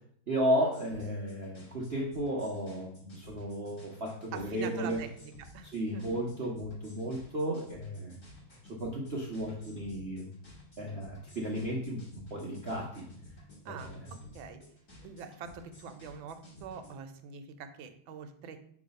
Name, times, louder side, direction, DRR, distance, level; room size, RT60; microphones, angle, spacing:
voice 1, 0.3-5.0 5.6-8.2 8.7-10.3 10.8-13.1 13.7-14.1, equal, 55° right, -3 dB, 0.7 m, -34 dB
sound 1, 0.7-17.0, left 1 dB, 40° left, 2.9 m, -54 dB
voice 2, 4.3-5.1 5.4-6.2 13.6-14.6 15.0-18.6, right 6 dB, 75° right, 8 dB, 1.4 m, -44 dB
5.9 x 3.1 x 5.1 m, 0.63 s
omnidirectional pair, 2.3 m